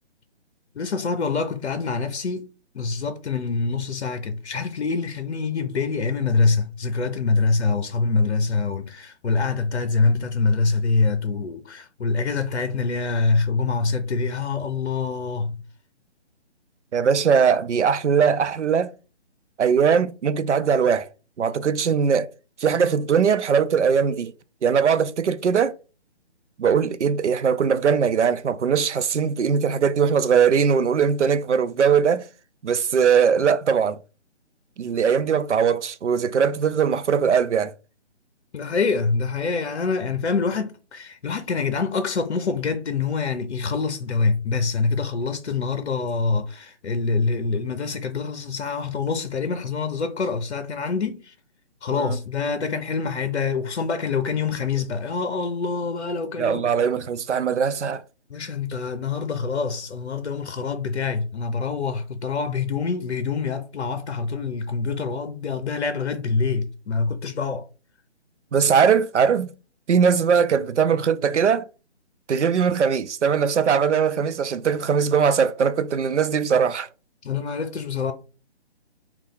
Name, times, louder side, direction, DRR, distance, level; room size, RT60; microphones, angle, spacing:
voice 1, 0.8-2.5 2.7-15.6 38.5-51.3 51.8-56.6 58.3-67.6 77.2-78.1, left 4 dB, 70° left, 0.6 m, -25 dB
voice 2, 16.9-18.9 19.6-21.1 21.4-22.3 22.6-24.3 24.6-25.8 26.6-32.3 32.6-34.0 34.8-37.7 51.9-52.2 56.4-58.0 68.5-69.5 69.9-71.7 72.3-76.9, right 6 dB, 90° right, 0.5 m, -20 dB
3.2 x 2.3 x 3.7 m
figure-of-eight pair, 145°, 34 cm